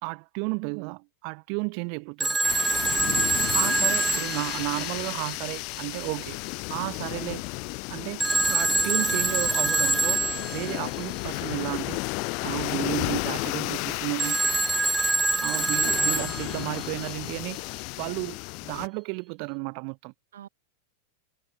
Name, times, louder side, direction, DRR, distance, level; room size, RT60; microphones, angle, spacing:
voice 1, 0.0-2.4 3.5-6.4 6.7-7.4 7.9-10.2 10.5-12.0 12.4-14.4 15.4-17.6 18.0-20.1, right 40 dB or more, 45° right, 1.3 m, -33 dB
Telephone, 2.2-5.3 8.2-10.8 14.2-16.9, right 3 dB, 10° right, 1.7 m, -25 dB
sound 1, 2.4-18.9, left 32 dB, 45° left, 2.0 m, -33 dB
voice 2, 3.0-4.1 16.0-16.3 20.3-20.5, right 10 dB, 60° right, 4.9 m, -46 dB
figure-of-eight pair, 90°, 0 cm